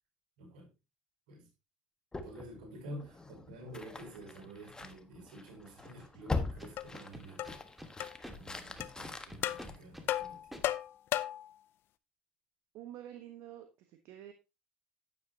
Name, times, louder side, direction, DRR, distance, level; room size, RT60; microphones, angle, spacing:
voice 1, 0.4-0.7 1.3-1.5 2.2-7.6 8.4-10.6, right 1 dB, 80° right, 5.6 m, -49 dB
sound 1, 2.1-10.6, left 3 dB, 15° left, 1.4 m, -43 dB
Scratching (performance technique), 6.6-7.9 8.2-8.4 8.8-10.1 10.5-10.6, equal, 5° right, 2.2 m, -47 dB
sound 2, 6.8-6.9 7.4-7.6 8.0-8.1 8.8-8.9 9.4-9.6 10.1-11.5, left 13 dB, 55° left, 0.6 m, -34 dB
voice 2, 12.7-14.3, right 11 dB, 65° right, 1.4 m, -48 dB
10.0 x 9.1 x 2.9 m
hypercardioid pair, 80°, 5 cm